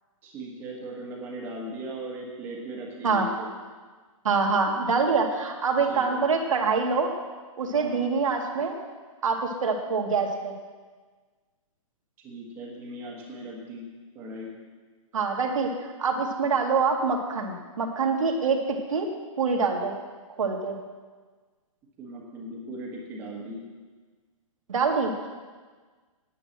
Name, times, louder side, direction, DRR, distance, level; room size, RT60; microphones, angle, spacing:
voice 1, 0.2-3.5 5.9-6.2 7.7-8.0 12.2-13.8 14.1-14.5 22.0-23.6, right 1 dB, 10° right, -2 dB, 1.5 m, -38 dB
voice 2, 4.2-7.1 7.6-8.7 9.2-10.5 15.1-19.1 19.4-19.9 20.4-20.8 24.7-25.1, right 4 dB, 70° right, 2 dB, 2.2 m, -25 dB
9.9 x 9.3 x 7.3 m, 1.4 s
hypercardioid pair, 180°, 18 cm